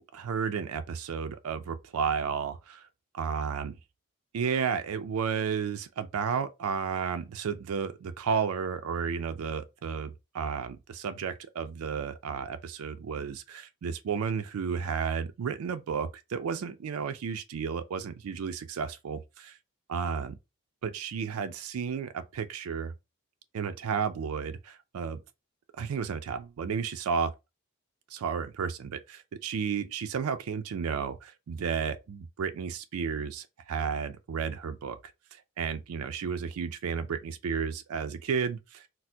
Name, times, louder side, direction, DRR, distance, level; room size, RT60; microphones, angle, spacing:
voice 1, 0.1-2.9 3.1-3.7 4.3-19.6 19.9-20.4 20.8-22.9 23.5-25.2 25.8-27.3 28.1-35.0 35.3-38.9, right 6 dB, 85° right, 0.4 m, -32 dB
4.2 x 2.0 x 2.7 m
head